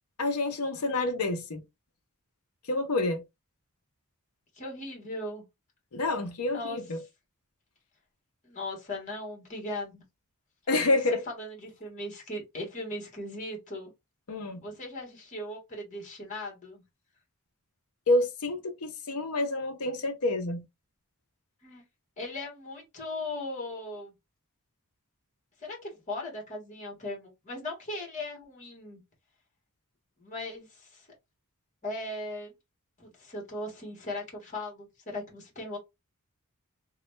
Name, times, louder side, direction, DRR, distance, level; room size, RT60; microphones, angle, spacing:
voice 1, 0.2-1.6 2.7-3.2 5.9-7.0 10.7-11.2 14.3-14.6 18.1-20.6, left 2 dB, 75° left, 0.8 m, -28 dB
voice 2, 4.5-5.4 6.5-6.8 8.4-10.0 10.9-11.0 11.4-13.9 14.6-16.8 21.6-21.8 22.2-24.1 25.6-29.0 30.2-31.1 31.8-32.5 33.0-35.8, left 1 dB, 35° left, 1.5 m, -38 dB
3.1 x 2.3 x 3.1 m
head